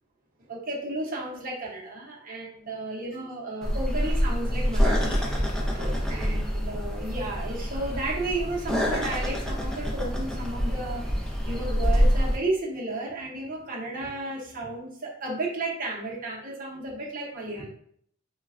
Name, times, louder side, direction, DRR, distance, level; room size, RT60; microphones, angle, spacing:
voice 1, 0.4-5.2 5.5-17.7, right 2 dB, 45° right, -3 dB, 0.7 m, -33 dB
sound 1, 3.6-12.4, equal, 5° left, 0.4 m, -26 dB
3.1 x 2.2 x 2.4 m, 0.64 s
head